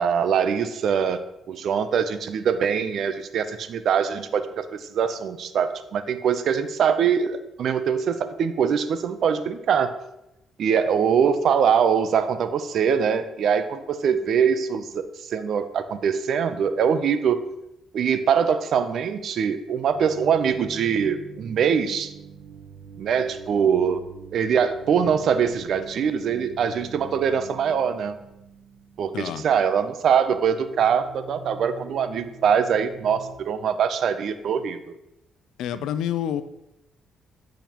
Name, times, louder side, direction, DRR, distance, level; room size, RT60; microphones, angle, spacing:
voice 1, 0.0-9.9 10.6-17.4 17.9-22.1 23.0-24.0 24.3-28.2 29.0-34.9, right 7 dB, 65° right, 11 dB, 0.5 m, -23 dB
sound 1, 19.9-29.9 30.1-33.4, right 5 dB, 50° right, 1.1 m, -44 dB
voice 2, 29.1-29.5 35.6-36.4, left 10 dB, 85° left, 12 dB, 0.4 m, -28 dB
9.1 x 5.1 x 2.9 m, 0.88 s
cardioid pair, 90°, 0 cm